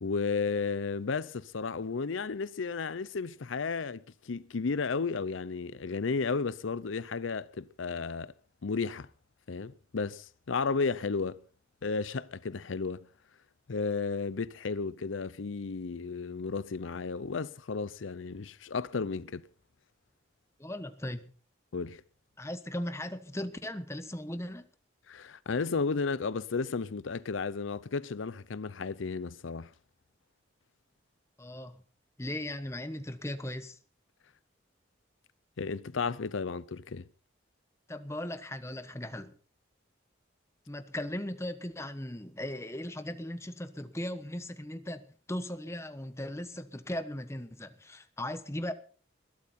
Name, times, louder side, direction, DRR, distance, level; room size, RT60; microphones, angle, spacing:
voice 1, 0.0-8.3 8.6-9.1 9.5-11.4 11.8-13.1 13.7-19.5 21.7-22.0 25.1-29.7 35.6-37.1, left 4 dB, 90° left, 0.6 m, -33 dB
voice 2, 20.6-21.3 22.4-24.7 31.4-31.8 32.2-33.8 37.9-39.3 40.7-45.0 45.3-48.7, left 1 dB, 15° left, 1.1 m, -38 dB
21.0 x 12.0 x 4.3 m
head